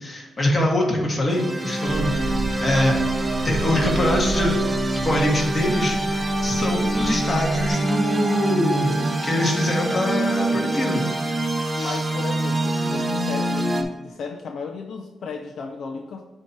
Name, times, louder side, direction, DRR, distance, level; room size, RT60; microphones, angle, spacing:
voice 1, 0.0-3.0 3.4-4.6 5.0-11.0 11.7-12.0, left 1 dB, 30° left, -1 dB, 1.6 m, -24 dB
sound 1, 1.3-13.8, right 1 dB, 20° right, 0.6 m, -25 dB
sound 2, 1.9-7.7, right 2 dB, 60° right, 0.6 m, -32 dB
voice 2, 2.0-2.4 11.8-16.2, left 4 dB, 70° left, 3 dB, 0.5 m, -34 dB
7.7 x 2.9 x 4.6 m, 1.1 s
cardioid pair, 110°, 0 cm